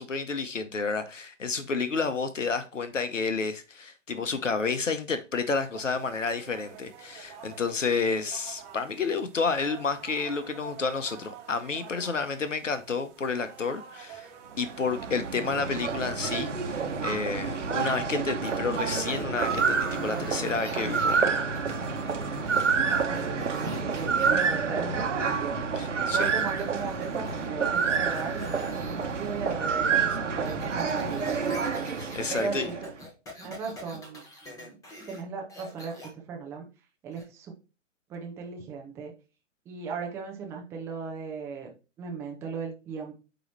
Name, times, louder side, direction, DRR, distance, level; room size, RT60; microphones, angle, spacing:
voice 1, 0.0-14.3 14.6-21.3 25.8-26.3 30.0-30.2 32.1-32.7, left 4 dB, 75° left, 0.9 m, -30 dB
sound 1, 5.7-17.8, right 9 dB, 25° right, 1.2 m, -48 dB
sound 2, 14.5-32.9, right 5 dB, 70° right, 1.2 m, -28 dB
sound 3, 18.5-21.2 21.5-24.5 26.2-27.5 27.7-29.5 29.9-35.2 35.5-36.1 37.1-37.2, left 1 dB, 10° left, 1.1 m, -46 dB
voice 2, 22.7-25.6 26.1-31.6 32.3-32.7 33.4-34.8 35.1-36.6 37.0-37.5 38.1-39.1 39.7-41.7 42.0-43.1, right 5 dB, 5° right, 0.5 m, -37 dB
8.7 x 3.1 x 4.3 m
figure-of-eight pair, 125°, 38 cm